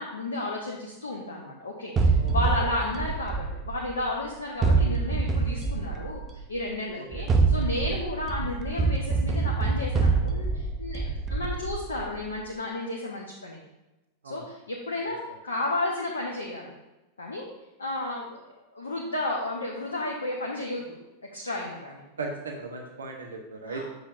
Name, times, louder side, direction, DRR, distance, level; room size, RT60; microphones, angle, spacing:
voice 1, 0.0-13.6 14.2-15.2 15.4-16.7 17.2-17.5 17.8-18.4 18.7-21.0 21.2-22.0 23.6-23.9, left 2 dB, 75° left, -2 dB, 0.9 m, -32 dB
sound 1, 2.0-4.1 4.6-6.4 7.1-12.2, right 4 dB, 25° right, 0.7 m, -25 dB
voice 2, 22.2-23.9, right 3 dB, 70° right, 1 dB, 1.0 m, -37 dB
7.7 x 6.5 x 2.6 m, 1.0 s
figure-of-eight pair, 90°, 0 cm